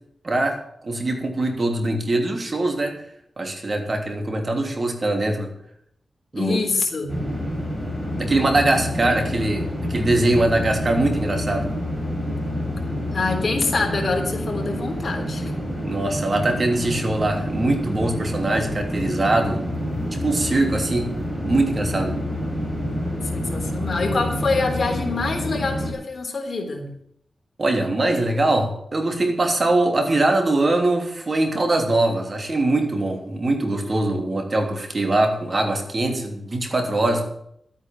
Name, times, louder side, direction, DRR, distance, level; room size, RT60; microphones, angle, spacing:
voice 1, 0.2-3.0 3.4-5.5 6.3-6.6 8.2-11.7 15.8-19.6 20.1-21.1 21.4-22.2 27.6-37.3, right 2 dB, 40° right, 4 dB, 3.0 m, -22 dB
voice 2, 6.3-7.2 13.1-15.5 23.2-26.9, left 3 dB, 50° left, 3 dB, 3.7 m, -25 dB
sound 1, 7.1-25.9, left 1 dB, ahead, 5.4 m, -28 dB
12.5 x 9.2 x 7.7 m, 0.72 s
wide cardioid pair, 80°, 0 cm